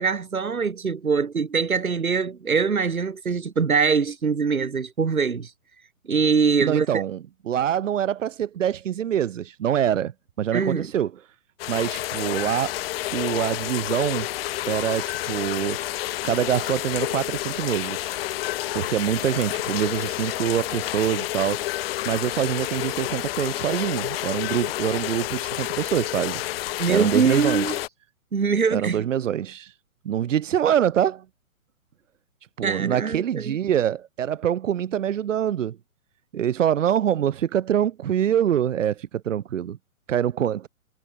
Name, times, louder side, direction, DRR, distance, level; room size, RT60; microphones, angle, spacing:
voice 1, 0.0-5.5 6.1-7.0 10.5-10.9 26.8-27.7 28.3-29.1 32.6-33.6, right 5 dB, 85° right, 4.7 m, -23 dB
voice 2, 6.6-7.2 7.5-10.1 10.4-11.1 11.7-12.8 13.1-14.3 14.7-18.2 18.7-26.4 26.9-27.8 28.7-29.7 30.0-31.2 32.6-35.8 36.3-39.8 40.1-40.7, right 10 dB, 65° right, 2.3 m, -25 dB
sound 1, 11.6-27.9, left 16 dB, 45° left, 2.4 m, -29 dB
hypercardioid pair, 135°, 41 cm